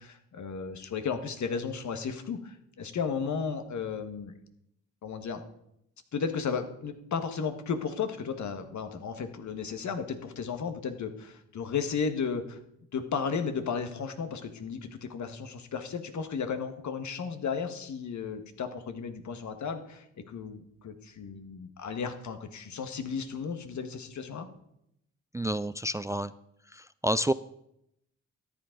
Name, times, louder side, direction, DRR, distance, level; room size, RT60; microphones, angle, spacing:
voice 1, 0.0-4.3 5.0-5.4 6.1-12.6 12.9-24.5, left 6 dB, 60° left, 7 dB, 1.6 m, -34 dB
voice 2, 25.3-26.3 26.7-27.3, equal, 10° right, 16 dB, 0.4 m, -29 dB
14.0 x 10.0 x 3.9 m, 0.79 s
supercardioid pair, 50°, 33 cm